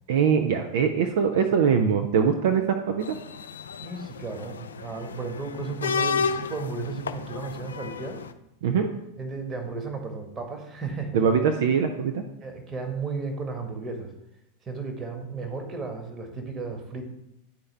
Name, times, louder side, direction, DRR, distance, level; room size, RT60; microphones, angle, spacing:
voice 1, 0.1-3.1 8.6-8.9 11.1-12.2, right 6 dB, 55° right, 6 dB, 0.5 m, -22 dB
sound 1, 3.0-8.3, left 5 dB, 70° left, 0.4 m, -32 dB
voice 2, 3.8-8.2 9.2-11.4 12.4-14.1 14.6-17.1, right 4 dB, 20° right, 4 dB, 1.4 m, -34 dB
11.0 x 4.4 x 3.4 m, 0.83 s
figure-of-eight pair, 90°, 0 cm